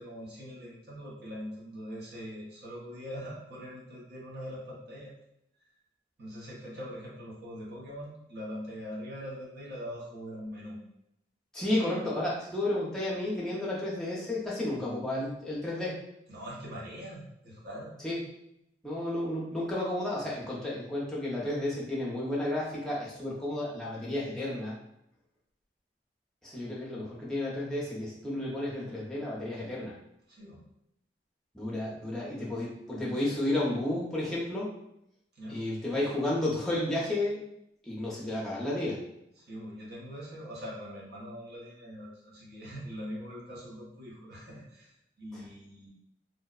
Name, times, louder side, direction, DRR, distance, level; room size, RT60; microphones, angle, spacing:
voice 1, 0.0-5.1 6.2-10.8 16.3-17.9 30.3-30.6 35.3-35.6 39.4-45.9, equal, 60° right, -4 dB, 0.8 m, -42 dB
voice 2, 11.5-16.0 18.0-18.2 18.8-24.7 26.4-29.9 31.5-34.7 35.5-37.4 37.9-39.0, left 1 dB, 5° left, -6 dB, 0.6 m, -32 dB
2.6 x 2.1 x 2.3 m, 0.80 s
head